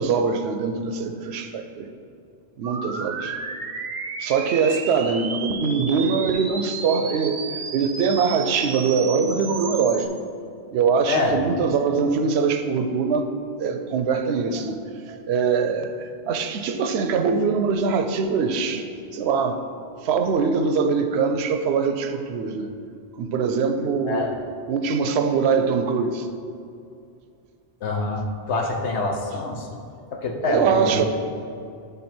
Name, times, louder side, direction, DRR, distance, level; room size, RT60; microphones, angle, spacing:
voice 1, 0.0-1.9 2.6-3.4 4.2-10.1 10.7-13.3 13.6-18.9 19.1-19.6 20.0-22.7 23.2-24.3 24.7-26.3 30.4-31.0, right 5 dB, 75° right, 7 dB, 0.8 m, -23 dB
sound 1, 2.6-10.1, right 4 dB, 50° right, 0.6 m, -33 dB
voice 2, 27.8-29.7 30.1-31.0, left 3 dB, 80° left, 1 dB, 1.1 m, -25 dB
9.8 x 3.5 x 4.3 m, 2.5 s
omnidirectional pair, 1.1 m